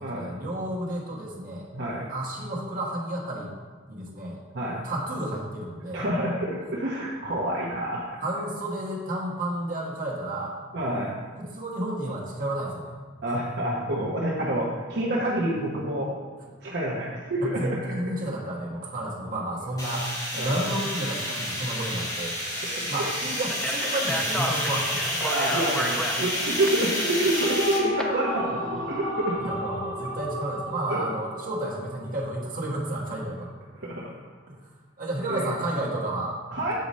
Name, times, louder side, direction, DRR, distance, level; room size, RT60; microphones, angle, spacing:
voice 1, 0.0-1.7 2.1-3.5 3.9-4.4 4.8-6.0 8.2-10.5 11.4-12.9 17.4-22.4 22.9-25.2 29.4-33.5 34.5-34.6 35.0-36.7, right 1 dB, 45° right, -4 dB, 1.4 m, -31 dB
voice 2, 1.7-2.1 4.5-4.8 5.9-8.2 10.7-11.1 13.2-16.1 16.6-17.9 20.3-20.6 22.6-22.9 25.2-29.4 30.9-31.0 33.7-34.1 35.3-35.5 36.5-36.7, right 1 dB, 60° right, -5 dB, 1.0 m, -28 dB
sound 1, 19.8-27.8, equal, 20° left, 2.1 m, -30 dB
Speech, 23.5-28.0, equal, 5° left, 0.6 m, -32 dB
sound 2, 27.2-32.4, left 1 dB, 80° right, 1.2 m, -34 dB
7.8 x 4.9 x 4.2 m, 1.5 s
head